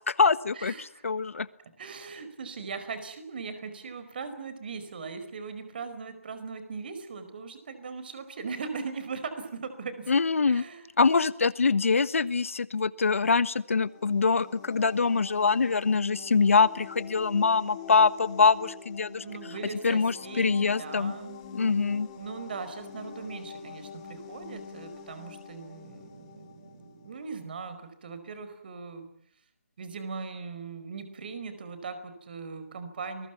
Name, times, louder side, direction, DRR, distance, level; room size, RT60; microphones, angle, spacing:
voice 1, 0.0-1.5 10.1-10.6 11.0-19.2 19.8-21.1 21.5-22.1, left 4 dB, 70° left, 16 dB, 1.4 m, -24 dB
voice 2, 0.5-1.0 1.6-10.1 10.5-10.8 19.2-21.5 22.2-29.1 29.8-33.3, right 5 dB, 40° right, 10 dB, 4.9 m, -39 dB
sound 1, 13.7-27.3, left 6 dB, 25° left, 3.4 m, -45 dB
30.0 x 21.5 x 7.2 m, 0.65 s
hypercardioid pair, 165°, 8 cm